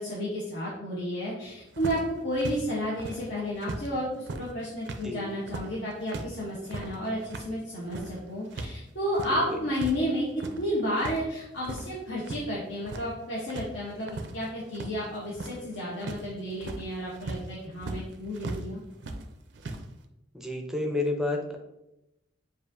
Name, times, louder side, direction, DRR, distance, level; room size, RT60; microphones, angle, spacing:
voice 1, 0.0-10.3 10.6-18.8, equal, 70° left, -7 dB, 1.0 m, -32 dB
sound 1, 1.7-3.9 4.1-8.8 9.0-10.0 10.3-11.2 11.5-12.5 12.7-13.2 13.5-18.7 19.0-19.8, right 2 dB, 60° right, 0.4 m, -38 dB
voice 2, 9.3-9.6 20.3-21.6, left 2 dB, ahead, 2 dB, 0.5 m, -30 dB
6.7 x 2.5 x 2.6 m, 0.91 s
head